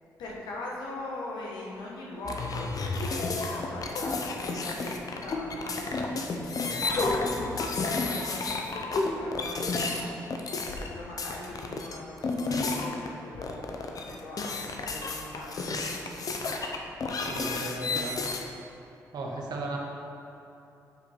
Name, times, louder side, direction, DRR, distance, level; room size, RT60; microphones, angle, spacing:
voice 1, 0.2-10.1 10.5-16.5, left 2 dB, 75° left, -3 dB, 1.7 m, -41 dB
sound 1, 2.2-13.1 13.3-18.4, left 3 dB, 55° left, 0.9 m, -31 dB
voice 2, 17.2-18.2 19.1-19.8, right 2 dB, 65° right, -1 dB, 1.5 m, -35 dB
7.8 x 5.8 x 4.7 m, 2.9 s
hypercardioid pair, 45°, 7 cm